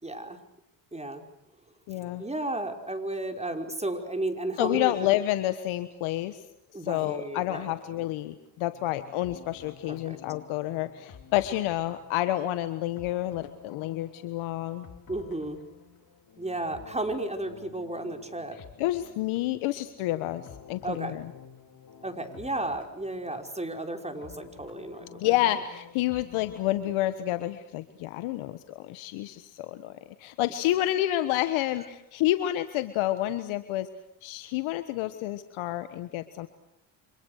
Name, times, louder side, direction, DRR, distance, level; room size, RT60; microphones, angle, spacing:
voice 1, 0.0-0.4 0.9-1.2 2.2-5.0 6.7-7.7 9.8-10.2 15.1-15.6 16.4-18.6 20.8-21.2 22.0-25.3, right 2 dB, 15° right, 5 dB, 5.1 m, -33 dB
voice 2, 1.9-2.2 4.6-6.4 6.8-14.9 18.8-21.3 25.2-33.9 34.2-36.5, left 14 dB, 75° left, 11 dB, 1.4 m, -29 dB
sound 1, 7.7-27.3, left 7 dB, 45° left, 3.0 m, -51 dB
30.0 x 26.0 x 6.5 m, 0.78 s
supercardioid pair, 65°, 48 cm